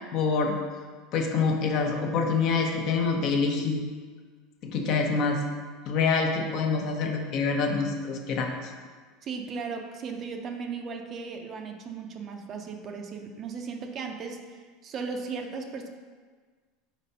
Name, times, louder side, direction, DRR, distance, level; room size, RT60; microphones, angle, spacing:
voice 1, 0.1-0.5 1.1-3.8 4.6-5.4 5.9-8.7, left 4 dB, 50° left, 3 dB, 0.8 m, -26 dB
voice 2, 9.2-15.9, right 5 dB, 35° right, 4 dB, 0.5 m, -36 dB
4.5 x 4.2 x 5.5 m, 1.5 s
supercardioid pair, 140°, 0 cm